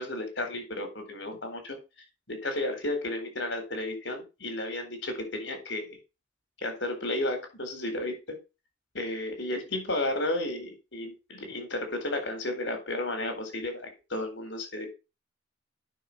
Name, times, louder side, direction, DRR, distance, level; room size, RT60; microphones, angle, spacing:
voice 1, 0.0-1.8 2.3-6.0 6.6-8.4 8.9-14.9, left 1 dB, 90° left, 6 dB, 4.1 m, -33 dB
9.2 x 6.3 x 5.7 m, 0.28 s
head